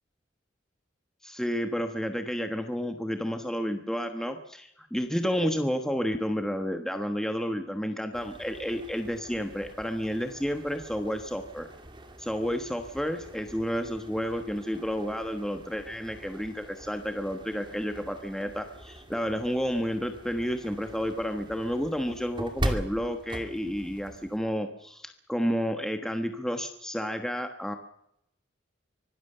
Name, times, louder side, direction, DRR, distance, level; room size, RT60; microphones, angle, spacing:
voice 1, 1.2-11.7 12.2-27.8, equal, 5° left, 6 dB, 1.2 m, -31 dB
sound 1, 8.1-24.4, right 1 dB, 25° right, 2.4 m, -41 dB
24.5 x 18.0 x 6.8 m, 0.76 s
head